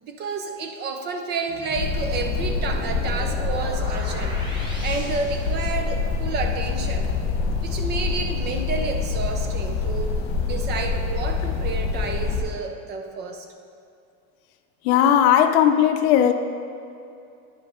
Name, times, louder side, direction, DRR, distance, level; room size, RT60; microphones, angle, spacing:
voice 1, 0.0-7.1 7.6-10.2 10.5-13.5, right 4 dB, 30° right, 4 dB, 0.5 m, -30 dB
sound 1, 1.5-6.2, equal, 15° right, 0.9 m, -39 dB
sound 2, 1.7-12.4, left 4 dB, 40° left, 1.3 m, -26 dB
voice 2, 14.8-16.3, left 10 dB, 70° left, 8 dB, 0.6 m, -17 dB
9.5 x 5.3 x 3.7 m, 2.5 s
cardioid pair, 155°, 35 cm